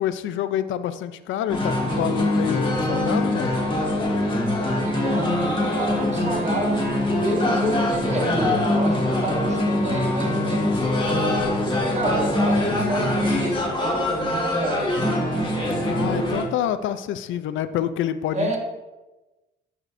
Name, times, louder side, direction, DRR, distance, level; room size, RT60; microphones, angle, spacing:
voice 1, 0.0-3.5 15.8-18.6, left 10 dB, 75° left, 12 dB, 0.4 m, -27 dB
sound 1, 1.5-16.4, left 1 dB, 25° left, 1.7 m, -23 dB
voice 2, 4.8-6.9 7.2-10.9 11.9-15.0 15.5-16.0 18.3-18.6, right 1 dB, 35° right, 1 dB, 1.5 m, -29 dB
11.0 x 4.9 x 2.6 m, 1.1 s
cardioid pair, 90°, 20 cm